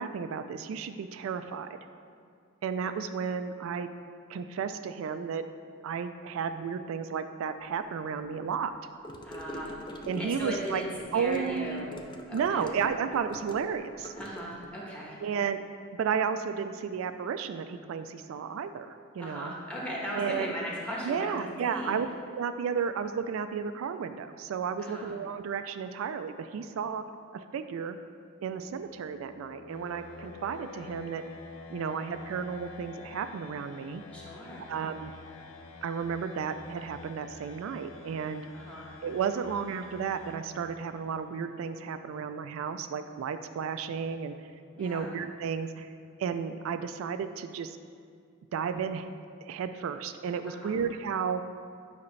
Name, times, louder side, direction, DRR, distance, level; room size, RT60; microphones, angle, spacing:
voice 1, 0.0-1.7 2.6-3.9 4.3-5.4 5.8-8.7 10.1-10.8 11.1-11.9 12.3-14.1 15.2-15.6 15.9-19.5 20.1-20.5 21.0-22.1 22.3-27.0 27.3-28.0 28.4-31.2 31.7-34.0 34.7-35.1 35.8-38.5 39.0-44.3 44.8-45.9 46.2-47.8 48.5-49.1 49.4-51.4, right 6 dB, 80° right, 9 dB, 0.3 m, -33 dB
Gurgling / Car passing by / Sink (filling or washing), 9.0-14.7, equal, 20° left, 0.4 m, -43 dB
voice 2, 9.2-10.9 11.1-11.9 12.3-12.7 14.2-15.2 19.2-21.4 21.6-21.9 24.8-25.1 34.1-34.7 38.5-38.9 44.7-45.1 50.5-50.7, equal, 5° left, -5 dB, 1.1 m, -38 dB
sound 1, 28.5-41.3, left 5 dB, 75° left, 0.5 m, -49 dB
8.4 x 5.0 x 3.2 m, 2.3 s
head